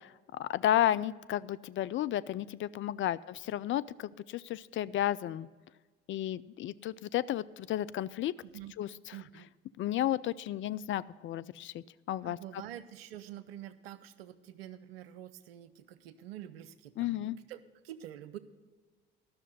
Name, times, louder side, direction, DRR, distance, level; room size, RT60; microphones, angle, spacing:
voice 1, 0.4-5.5 6.1-8.3 8.8-8.9 9.8-12.6 17.0-17.4, left 12 dB, 45° left, 17 dB, 0.4 m, -32 dB
voice 2, 8.4-8.7 9.1-9.5 12.2-17.6 17.8-18.4, right 12 dB, 85° right, 14 dB, 0.6 m, -47 dB
12.0 x 6.4 x 7.7 m, 1.4 s
hypercardioid pair, 50°, 29 cm